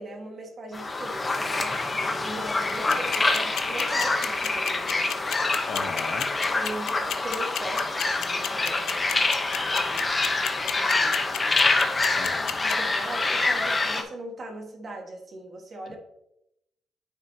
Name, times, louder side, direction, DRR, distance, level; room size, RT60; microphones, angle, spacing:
voice 1, 0.0-1.8 2.2-5.5 6.6-11.8 12.6-16.0, right 1 dB, 45° right, 2 dB, 1.7 m, -40 dB
sound 1, 0.7-14.0, left 3 dB, 25° left, 0.9 m, -26 dB
sound 2, 2.7-12.7, left 10 dB, 75° left, 0.5 m, -30 dB
voice 2, 5.7-6.3 12.2-12.6 15.9-16.0, left 5 dB, 60° left, 6 dB, 0.9 m, -36 dB
9.4 x 4.9 x 2.8 m, 0.82 s
cardioid pair, 90°, 0 cm